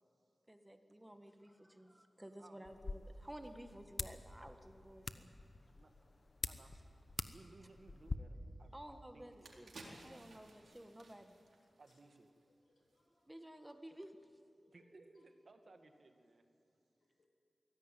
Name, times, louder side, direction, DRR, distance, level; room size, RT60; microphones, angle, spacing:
voice 1, 0.5-5.3 8.7-11.3 13.3-14.1, right 1 dB, 10° right, 6 dB, 1.7 m, -54 dB
voice 2, 1.0-2.2 11.2-11.4 11.8-12.0 12.6-13.6 14.6-15.2 17.0-17.3, left 2 dB, 85° left, 1 dB, 5.8 m, -78 dB
sound 1, 2.6-8.2, left 3 dB, 55° left, 1.0 m, -46 dB
voice 3, 5.8-6.1 6.5-6.8 7.3-9.5 10.1-10.3 11.8-12.3 14.7-16.4, right 3 dB, 60° right, 5 dB, 2.1 m, -62 dB
sound 2, 8.7-8.8 9.2-12.5 12.8-13.0, right 2 dB, 85° right, 3.9 m, -58 dB
23.0 x 16.5 x 9.3 m, 2.6 s
cardioid pair, 60°, 0 cm